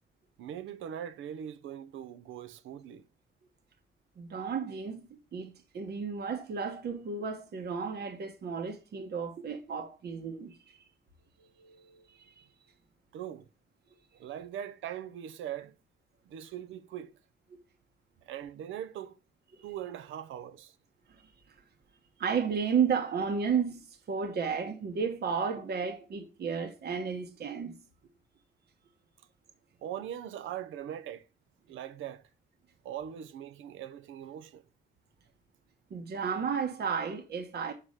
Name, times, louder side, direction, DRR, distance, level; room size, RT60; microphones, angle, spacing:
voice 1, 0.4-3.1 13.1-13.5 14.1-15.7 16.3-17.1 18.2-19.2 19.6-20.7 29.8-31.3 31.7-32.2 32.8-34.6, right 10 dB, 80° right, 0.7 m, -41 dB
voice 2, 4.2-10.8 11.4-12.4 19.6-19.7 21.1-21.3 22.2-27.8 35.9-37.7, right 6 dB, 55° right, 1.2 m, -33 dB
5.9 x 4.7 x 6.5 m
cardioid pair, 90°, 20 cm